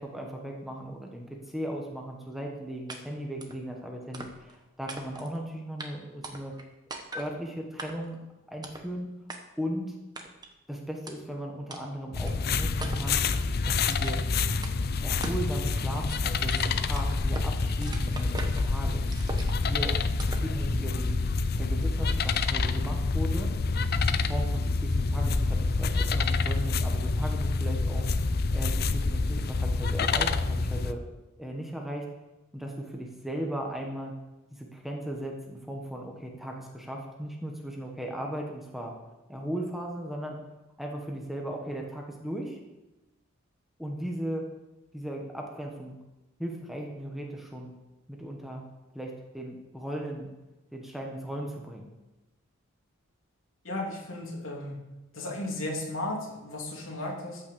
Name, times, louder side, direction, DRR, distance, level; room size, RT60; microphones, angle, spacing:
voice 1, 0.0-6.5 7.1-8.2 8.5-9.1 9.6-9.9 10.7-13.2 13.7-14.2 15.0-19.0 19.6-19.9 20.3-23.5 24.1-28.1 28.5-31.0 31.4-32.1 32.5-34.1 34.5-38.9 39.3-40.4 40.8-42.6 43.8-44.4 44.9-46.0 46.4-47.7 48.1-48.6 48.9-50.3 50.7-51.9, right 1 dB, ahead, 0 dB, 1.4 m, -37 dB
sound 1, 2.9-3.0 3.4-3.6 4.1-4.6 4.9-5.4 5.8-5.9 6.2-6.6 6.9-7.3 7.8-8.2 8.6-8.9 9.3-9.4 10.2-10.5 11.1-11.2 11.7-11.8 12.3-12.4 12.8-13.2 13.9-14.3 14.6-14.8 15.2-15.5 15.8-17.5 17.8-18.7 19.1-19.7 20.2-20.5, right 2 dB, 20° right, 1.2 m, -41 dB
sound 2, 12.1-30.9, left 3 dB, 50° left, 0.6 m, -27 dB
voice 2, 53.6-54.8 55.1-57.4, left 1 dB, 70° left, -1 dB, 3.2 m, -35 dB
14.0 x 6.3 x 7.0 m, 1.0 s
head